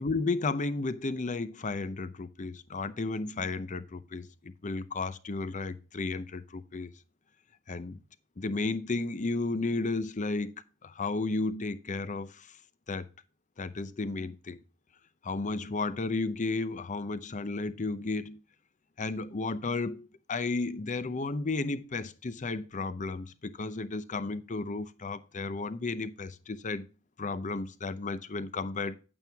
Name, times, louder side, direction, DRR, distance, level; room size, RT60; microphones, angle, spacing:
voice 1, 0.0-6.9 7.7-8.0 8.4-10.5 10.8-12.5 12.9-13.1 13.6-14.6 15.2-18.4 19.0-26.9 27.2-29.0, left 3 dB, 40° left, 0.7 m, -33 dB
9.0 x 8.8 x 3.5 m
head